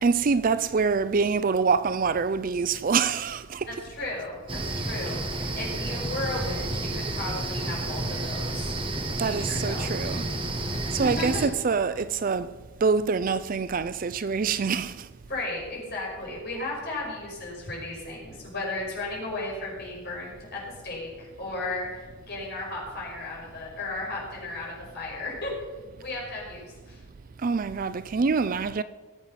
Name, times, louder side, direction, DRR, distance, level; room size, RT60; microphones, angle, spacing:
voice 1, 0.0-3.8 9.2-10.3 10.9-12.5 12.8-15.1 27.4-28.8, right 5 dB, 40° right, 0.4 m, -25 dB
voice 2, 3.7-8.8 9.2-9.9 10.8-11.4 15.3-25.5 26.0-26.6 26.9-27.0, left 2 dB, 50° left, 5.6 m, -35 dB
sound 1, 4.5-11.5, right 2 dB, 25° right, 1.4 m, -30 dB
19.5 x 8.0 x 5.8 m
head